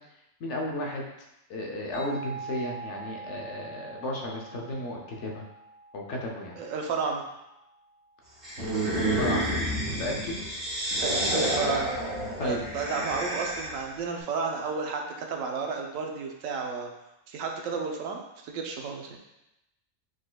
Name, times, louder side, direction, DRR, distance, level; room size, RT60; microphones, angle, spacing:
voice 1, 0.4-1.1 1.5-5.5 5.9-6.6 9.1-10.4 12.4-12.6, left 1 dB, 65° left, 0 dB, 1.0 m, -34 dB
sound 1, 1.9-7.4, right 3 dB, 20° left, 1.4 m, -43 dB
voice 2, 6.6-7.2 11.0-16.9 17.3-19.2, right 5 dB, 80° right, 2 dB, 1.0 m, -32 dB
sound 2, 8.4-13.9, right 1 dB, 45° right, 1.7 m, -29 dB
4.8 x 4.0 x 2.2 m, 0.90 s
omnidirectional pair, 1.4 m